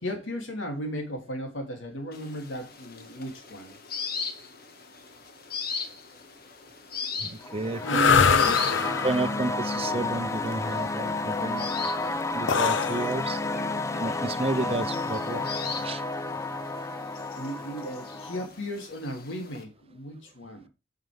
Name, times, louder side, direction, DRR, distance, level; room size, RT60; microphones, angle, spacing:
voice 1, 0.0-3.8 7.8-8.5 17.3-20.7, equal, 90° left, 3.0 m, -35 dB
sound 1, 2.1-19.6, left 5 dB, 55° left, 1.5 m, -40 dB
voice 2, 7.2-8.0 8.5-8.6 9.0-11.7 12.3-13.4 14.0-15.5 15.8-16.0, right 2 dB, 30° right, 0.7 m, -31 dB
sound 2, 7.4-18.5, left 3 dB, 15° left, 0.5 m, -31 dB
sound 3, 7.8-15.8, left 6 dB, 70° left, 0.6 m, -26 dB
9.2 x 6.6 x 3.6 m
head